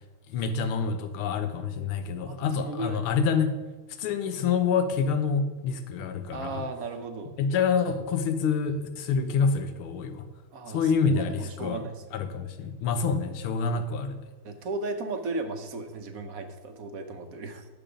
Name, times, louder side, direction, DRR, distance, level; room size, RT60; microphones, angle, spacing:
voice 1, 0.3-3.6 4.0-6.6 7.4-10.3 10.7-11.8 12.1-14.2, left 5 dB, 90° left, 9 dB, 1.7 m, -27 dB
voice 2, 2.3-3.1 6.3-7.3 10.5-11.9 14.4-17.7, right 3 dB, 60° right, 6 dB, 0.9 m, -36 dB
10.5 x 6.9 x 5.0 m, 1.2 s
omnidirectional pair, 2.3 m